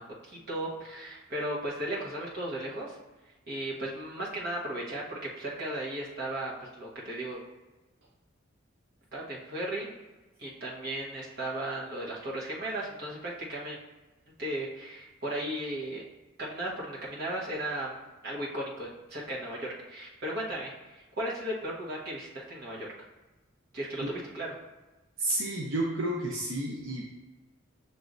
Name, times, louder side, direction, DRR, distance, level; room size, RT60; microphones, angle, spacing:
voice 1, 0.0-3.0 3.5-7.4 9.1-9.9 10.4-13.8 14.4-16.0 16.4-17.9 18.2-22.9 23.7-24.5, right 1 dB, 50° right, -5 dB, 1.2 m, -36 dB
voice 2, 25.2-27.0, right 1 dB, 85° right, -2 dB, 0.7 m, -31 dB
6.7 x 3.0 x 2.6 m, 1.1 s
head